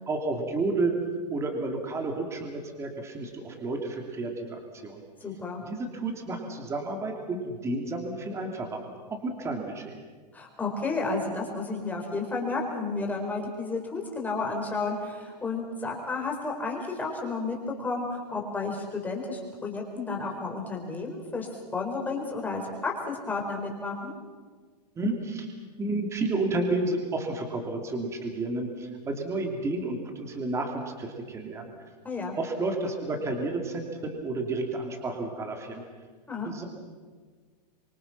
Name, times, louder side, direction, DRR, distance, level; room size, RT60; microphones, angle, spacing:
voice 1, 0.1-0.9 1.3-5.0 5.7-8.8 9.1-10.0 25.0-25.5 25.8-31.7 32.3-35.8 36.4-36.6, right 2 dB, 15° right, 3 dB, 2.9 m, -31 dB
voice 2, 5.2-5.6 10.3-24.1 32.0-32.4 36.3-36.5, left 3 dB, 10° left, 0 dB, 4.5 m, -32 dB
26.0 x 25.5 x 6.0 m, 1.5 s
supercardioid pair, 160°, 21 cm